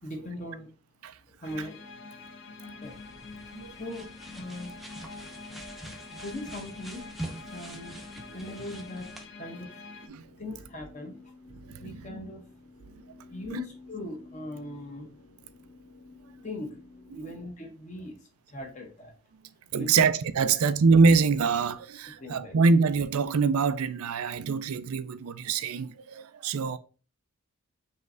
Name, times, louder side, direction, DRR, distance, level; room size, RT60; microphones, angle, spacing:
voice 1, 0.0-0.7 1.4-2.1 2.8-3.0 3.8-4.1 4.3-4.7 6.1-7.0 7.5-8.1 8.3-9.7 10.4-11.3 11.8-12.5 13.3-15.1 16.4-16.8 17.1-18.2 18.5-19.1 19.8-20.0 20.5-20.6 22.2-22.6, left 1 dB, 35° left, 0.9 m, -40 dB
sound 1, 1.4-10.1, left 3 dB, 60° left, 0.5 m, -45 dB
sound 2, 1.8-17.4, left 2 dB, 75° left, 2.3 m, -54 dB
sound 3, 2.8-9.3, right 1 dB, ahead, 0.5 m, -45 dB
voice 2, 3.5-4.0 8.3-8.6 10.0-10.2 10.5-10.6 11.5-12.1 12.9-13.0 13.5-13.6 17.1-17.4 19.7-26.8, right 4 dB, 85° right, 0.4 m, -25 dB
5.4 x 3.2 x 2.6 m
head